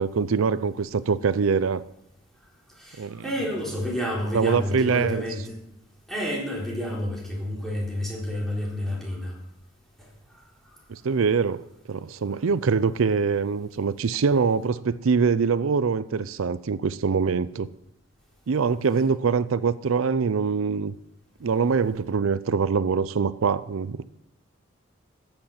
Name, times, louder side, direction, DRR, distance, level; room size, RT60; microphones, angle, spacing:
voice 1, 0.0-1.8 3.0-3.2 4.3-5.2 10.9-17.7 18.5-20.9 21.4-24.0, right 5 dB, 90° right, 0.5 m, -24 dB
voice 2, 2.7-5.5 6.1-9.3 10.0-10.1, equal, ahead, 3.9 m, -30 dB
14.5 x 8.9 x 5.8 m
head